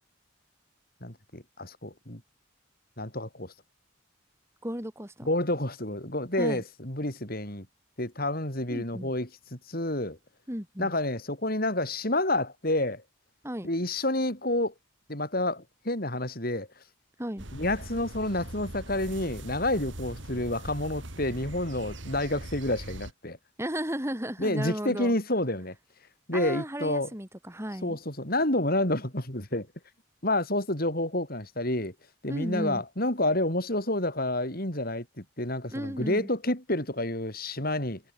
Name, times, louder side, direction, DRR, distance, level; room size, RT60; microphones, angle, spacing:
voice 1, 1.0-2.2 3.0-3.5 5.2-7.7 8.0-10.2 10.8-13.0 13.6-14.7 15.1-16.7 17.5-23.4 24.4-25.7 26.3-27.1 27.8-29.7 30.2-31.9 32.2-38.0, left 1 dB, 45° left, 5.3 m, -29 dB
voice 2, 4.6-5.3 6.4-6.6 8.7-9.1 10.5-10.9 13.4-13.7 17.2-17.4 23.6-25.2 26.3-28.0 32.3-32.8 35.7-36.3, equal, 15° right, 3.8 m, -34 dB
sound 1, 17.4-23.1, right 1 dB, 65° right, 4.0 m, -41 dB
head